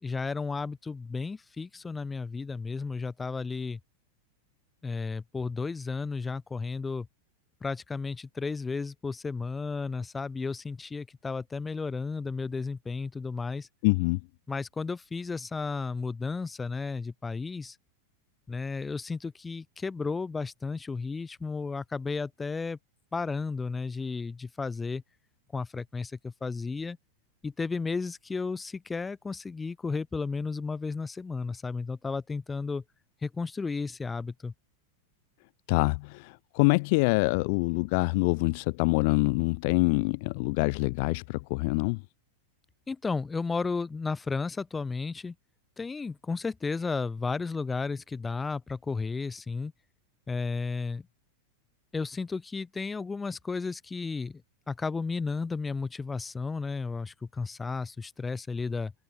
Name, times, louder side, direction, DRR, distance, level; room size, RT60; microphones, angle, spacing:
voice 1, 0.0-3.8 4.8-7.1 7.6-13.7 14.5-17.8 18.5-22.8 23.1-25.0 25.5-27.0 27.4-32.8 33.2-34.5 42.9-45.3 45.8-49.7 50.3-51.1 51.9-54.4 54.7-58.9, left 4 dB, 10° left, 2.7 m, -33 dB
voice 2, 13.8-14.2 35.7-42.0, left 29 dB, 45° left, 0.3 m, -25 dB
supercardioid pair, 160°, 0 cm